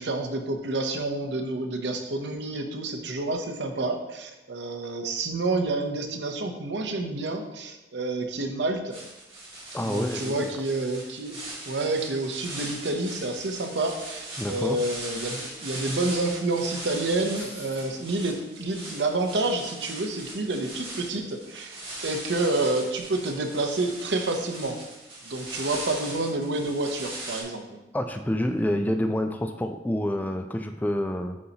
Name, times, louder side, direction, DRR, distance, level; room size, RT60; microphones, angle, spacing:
voice 1, 0.0-9.0 9.8-11.4 11.6-24.8 25.2-27.6, right 2 dB, 80° right, 5 dB, 0.7 m, -29 dB
sound 1, 8.9-27.4, right 2 dB, 30° right, 1.8 m, -39 dB
voice 2, 9.7-10.5 14.4-14.8 27.9-31.4, left 1 dB, 10° left, 6 dB, 0.3 m, -28 dB
9.4 x 4.1 x 2.8 m, 1.0 s
head